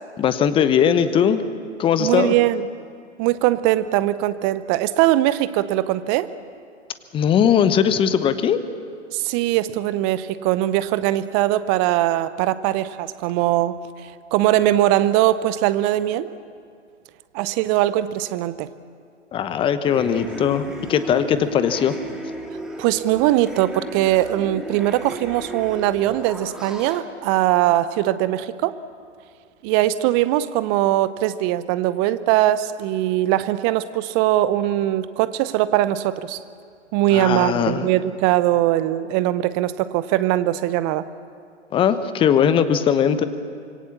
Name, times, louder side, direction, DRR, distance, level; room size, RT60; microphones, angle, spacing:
voice 1, 0.2-1.4 1.8-2.3 7.1-8.6 19.3-22.0 37.1-37.9 41.7-43.3, left 8 dB, 15° left, 12 dB, 0.9 m, -19 dB
voice 2, 2.0-2.7 3.2-6.3 9.1-16.3 17.3-18.7 22.8-28.7 29.6-36.4 36.9-41.1, right 14 dB, 25° right, 15 dB, 0.7 m, -21 dB
sound 1, 19.8-27.0, right 1 dB, ahead, 2.1 m, -35 dB
26.0 x 24.0 x 7.2 m, 2.2 s
figure-of-eight pair, 120°, 36 cm